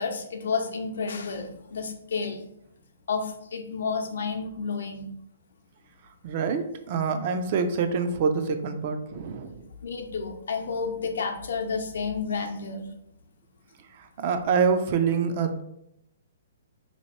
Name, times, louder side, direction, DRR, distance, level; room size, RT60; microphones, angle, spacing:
voice 1, 0.0-2.4 3.1-5.1 9.8-12.9, left 5 dB, 75° left, 4 dB, 0.6 m, -31 dB
voice 2, 6.2-9.6 14.2-15.6, right 5 dB, 40° right, 8 dB, 0.4 m, -26 dB
2.8 x 2.5 x 4.3 m, 0.80 s
hypercardioid pair, 150°, 0 cm